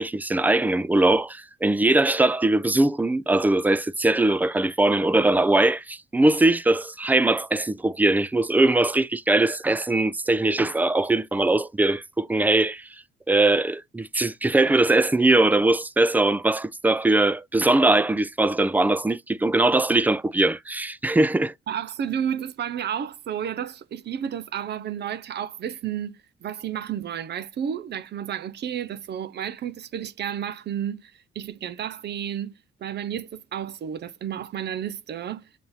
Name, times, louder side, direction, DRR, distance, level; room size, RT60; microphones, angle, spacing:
voice 1, 0.0-12.9 13.3-21.5, right 2 dB, 10° right, 0.4 m, -21 dB
voice 2, 21.7-32.5 32.8-35.5, right 9 dB, 60° right, 0.7 m, -31 dB
7.4 x 2.7 x 5.7 m
cardioid pair, 90°, 20 cm